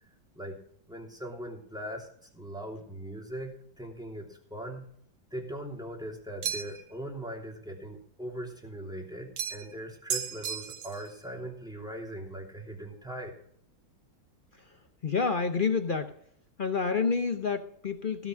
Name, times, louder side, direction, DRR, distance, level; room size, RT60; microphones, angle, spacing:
voice 1, 0.9-2.1 2.3-4.9 5.3-13.4, right 1 dB, ahead, 0 dB, 2.9 m, -40 dB
sound 1, 6.4-6.9 9.4-9.7 10.1-11.1, right 7 dB, 65° right, 1.5 m, -34 dB
voice 2, 15.0-16.1 16.6-18.3, left 5 dB, 65° left, 7 dB, 0.5 m, -29 dB
16.5 x 6.2 x 6.3 m, 0.66 s
omnidirectional pair, 2.1 m